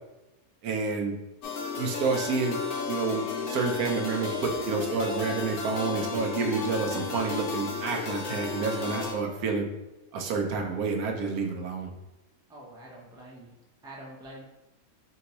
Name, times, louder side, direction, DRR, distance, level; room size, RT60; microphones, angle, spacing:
voice 1, 0.6-1.2 1.8-2.6 2.9-9.7 10.1-11.9, right 4 dB, 90° right, 3 dB, 1.2 m, -29 dB
sound 1, 1.4-9.1, left 5 dB, 80° left, 1.2 m, -33 dB
voice 2, 12.5-13.6 13.8-14.4, right 1 dB, 5° right, -4 dB, 0.5 m, -46 dB
3.8 x 3.5 x 3.0 m, 1.0 s
omnidirectional pair, 1.5 m